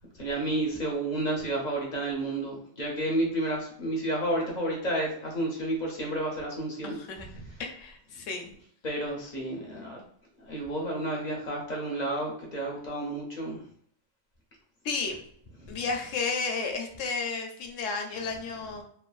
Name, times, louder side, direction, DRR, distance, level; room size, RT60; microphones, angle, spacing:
voice 1, 0.1-7.0 7.3-7.6 8.8-10.0 10.4-13.6 15.6-15.8 18.1-18.2, right 1 dB, 50° left, -2 dB, 0.5 m, -31 dB
voice 2, 6.8-7.3 7.6-8.5 14.8-15.2 15.7-18.8, left 4 dB, 75° left, 4 dB, 0.9 m, -32 dB
3.1 x 2.1 x 2.3 m, 0.64 s
omnidirectional pair, 1.3 m